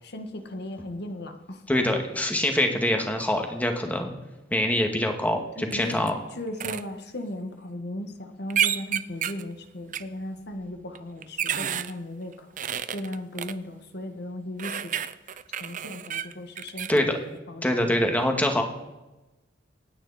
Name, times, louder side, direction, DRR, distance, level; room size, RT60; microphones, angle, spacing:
voice 1, 0.0-1.6 5.6-12.5 12.9-14.9 15.6-18.0, left 1 dB, 60° left, 6 dB, 1.6 m, -37 dB
voice 2, 1.7-4.1 4.5-6.1 16.9-17.2 17.6-18.6, left 1 dB, 10° left, 3 dB, 2.0 m, -24 dB
sound 1, 5.7-6.1 6.6-6.8 8.5-9.4 9.9-10.0 11.0-11.9 12.6-13.5 14.6-17.0, right 9 dB, 45° right, 0.6 m, -29 dB
27.0 x 9.8 x 4.3 m, 1.0 s
head